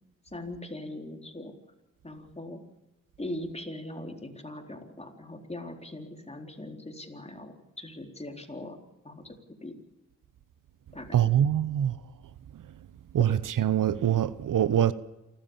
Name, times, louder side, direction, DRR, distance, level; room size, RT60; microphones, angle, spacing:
voice 1, 0.3-1.6 2.0-2.7 3.2-8.8 9.0-9.3 9.6-9.8 10.9-11.2, left 1 dB, 20° left, 4.1 m, -40 dB
voice 2, 11.1-12.0 13.1-14.9, right 10 dB, 75° right, 0.8 m, -24 dB
28.0 x 13.0 x 7.2 m
cardioid pair, 50°, 32 cm